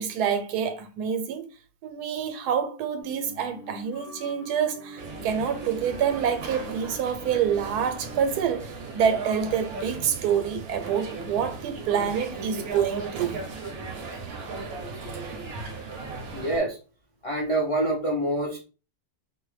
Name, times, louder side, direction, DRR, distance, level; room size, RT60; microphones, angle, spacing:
voice 1, 0.0-1.5 1.8-13.4, right 8 dB, 90° right, 1.1 m, -27 dB
sound 1, 3.0-8.3, equal, 75° left, 1.0 m, -44 dB
sound 2, 5.0-16.6, right 4 dB, 60° right, 0.7 m, -37 dB
voice 2, 16.3-16.8 17.2-18.6, right 1 dB, 45° left, 0.4 m, -26 dB
2.7 x 2.1 x 3.1 m
omnidirectional pair, 1.6 m